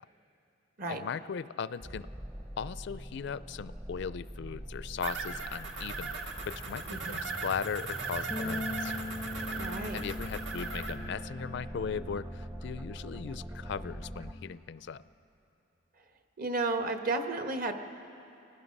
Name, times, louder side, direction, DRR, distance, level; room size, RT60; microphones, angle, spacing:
voice 1, 0.9-2.1 2.6-8.9 9.9-15.0, left 6 dB, 65° left, 16 dB, 0.4 m, -38 dB
sound 1, 1.8-14.3, right 1 dB, 15° right, 0.7 m, -43 dB
sound 2, 5.0-10.9, right 4 dB, 70° right, 1.7 m, -38 dB
sound 3, 8.3-14.6, left 2 dB, 10° left, 0.5 m, -42 dB
voice 2, 9.5-10.0 16.4-17.7, right 3 dB, 50° right, 5 dB, 1.3 m, -33 dB
29.0 x 18.5 x 5.4 m, 2.8 s
head